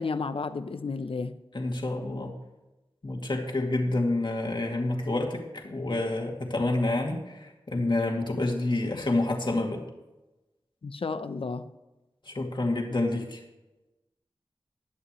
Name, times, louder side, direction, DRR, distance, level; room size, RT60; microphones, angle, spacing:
voice 1, 0.0-1.4 10.8-11.7, left 4 dB, 80° left, 11 dB, 0.7 m, -32 dB
voice 2, 1.5-2.3 3.0-9.8 12.3-13.4, left 2 dB, 55° left, 1 dB, 2.5 m, -28 dB
18.0 x 11.0 x 3.2 m, 1.0 s
wide cardioid pair, 70°, 9 cm